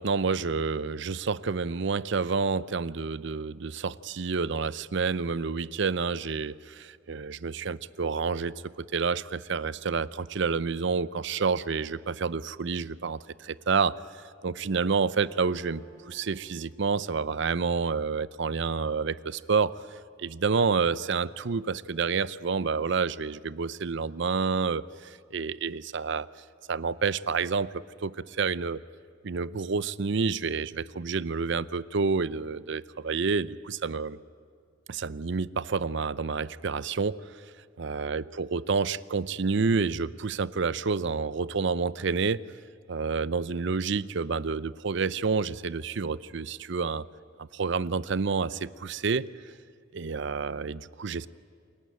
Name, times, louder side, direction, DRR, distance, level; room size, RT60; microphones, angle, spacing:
voice 1, 0.0-19.8 20.2-26.3 26.7-28.8 29.2-34.2 34.9-37.2 37.8-42.5 42.9-47.1 47.4-49.3 49.9-51.3, right 5 dB, 65° right, 17 dB, 0.6 m, -29 dB
Acoustic guitar, 15.3-18.8, right 2 dB, 15° left, 5.7 m, -56 dB
28.0 x 22.0 x 9.2 m, 2.3 s
head